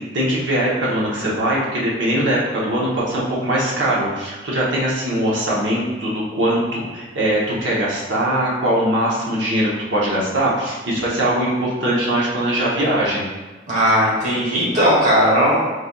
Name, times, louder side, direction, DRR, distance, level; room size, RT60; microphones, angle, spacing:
voice 1, 0.1-13.2, right 1 dB, 80° right, -5 dB, 0.9 m, -21 dB
voice 2, 13.7-15.6, equal, 40° right, -7 dB, 1.2 m, -17 dB
3.8 x 3.2 x 2.3 m, 1.2 s
head